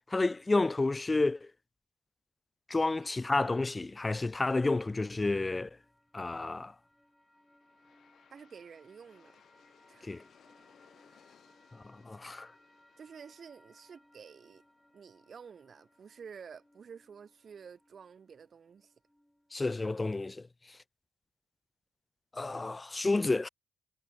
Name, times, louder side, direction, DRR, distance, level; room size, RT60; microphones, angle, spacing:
voice 1, 0.1-1.5 2.7-5.7 6.1-6.7 10.0-10.2 12.1-12.5 19.5-20.4 22.3-23.5, left 3 dB, 20° left, 0.5 m, -30 dB
sound 1, 4.8-20.2, equal, 5° left, 6.1 m, -66 dB
Aircraft, 6.8-17.8, left 8 dB, 60° left, 3.9 m, -67 dB
voice 2, 8.3-9.4 9.9-10.2 13.0-14.6 14.9-18.9, right 6 dB, 45° right, 3.6 m, -51 dB
cardioid pair, 90°, 0 cm